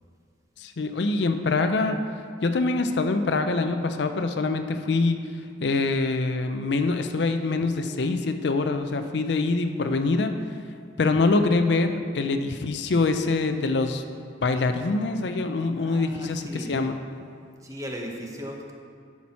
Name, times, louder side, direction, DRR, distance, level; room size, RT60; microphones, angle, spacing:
voice 1, 0.6-2.0 2.4-5.2 5.6-10.4 11.0-14.0 14.4-17.0, left 3 dB, 60° left, 8 dB, 0.5 m, -24 dB
voice 2, 15.7-16.8 17.6-18.7, equal, 15° right, 0 dB, 0.9 m, -37 dB
12.0 x 6.0 x 4.2 m, 2.2 s
head